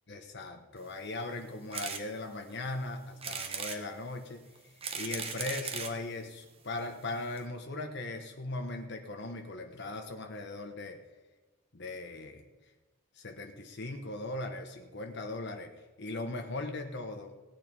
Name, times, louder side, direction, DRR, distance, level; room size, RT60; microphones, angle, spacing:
voice 1, 0.1-4.4 4.9-11.0 11.7-12.4 13.1-15.7 16.0-17.3, left 2 dB, 55° left, 4 dB, 1.1 m, -39 dB
sound 1, 1.7-2.0 2.5-2.6 3.2-3.8 4.6-6.0 6.8-6.9 7.1-7.2 7.4-7.5, right 6 dB, 25° right, 1.1 m, -37 dB
17.5 x 8.8 x 5.4 m, 1.2 s
head